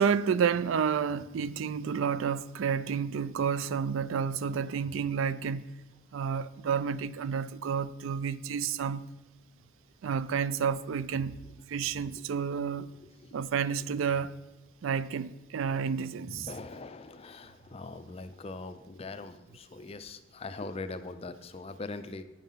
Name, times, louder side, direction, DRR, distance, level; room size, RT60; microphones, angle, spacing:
voice 1, 0.0-5.7 6.1-9.0 10.0-11.4 11.7-12.9 13.3-14.4 14.8-16.5, right 6 dB, 65° right, 0.3 m, -30 dB
voice 2, 13.0-13.3 16.2-22.2, left 3 dB, 25° left, 0.4 m, -42 dB
9.0 x 5.5 x 5.6 m
head